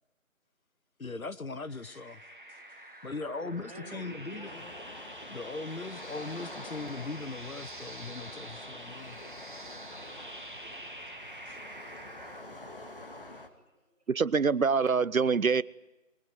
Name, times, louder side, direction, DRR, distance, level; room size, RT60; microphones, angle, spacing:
voice 1, 1.0-2.2 3.0-4.6 5.3-9.2 11.5-11.6, left 3 dB, 80° left, 1.4 m, -39 dB
sound 1, 1.7-12.4, right 1 dB, 35° right, 1.8 m, -47 dB
voice 2, 2.5-4.6 13.0-13.4, right 1 dB, 5° right, 3.7 m, -51 dB
sound 2, 4.4-13.5, left 1 dB, 40° left, 2.3 m, -47 dB
voice 3, 14.1-15.6, right 5 dB, 75° right, 0.8 m, -25 dB
22.5 x 20.0 x 9.6 m
figure-of-eight pair, 175°, 41 cm